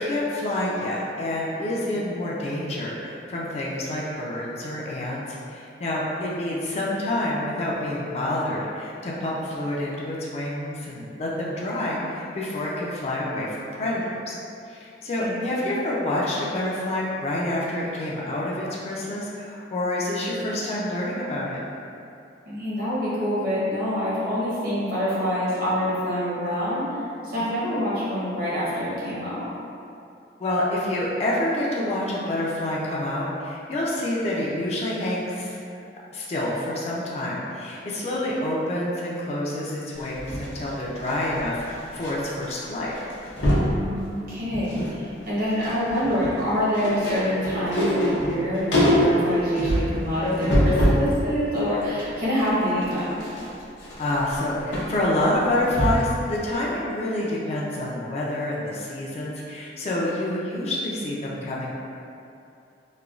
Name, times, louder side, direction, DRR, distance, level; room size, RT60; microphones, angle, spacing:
voice 1, 0.0-14.3 14.7-21.6 30.4-35.6 36.1-42.9 54.0-61.7, left 1 dB, 35° left, -5 dB, 0.3 m, -27 dB
voice 2, 15.2-15.5 22.5-26.9 27.2-29.5 43.6-53.2, equal, 50° right, -9 dB, 0.8 m, -26 dB
sound 1, 40.0-42.1 42.4-42.7 42.9-43.8 44.3-45.0 45.2-51.1 51.5-56.2 56.5-56.6, equal, 85° left, 0.6 m, -25 dB
3.0 x 2.2 x 2.4 m, 2.6 s
head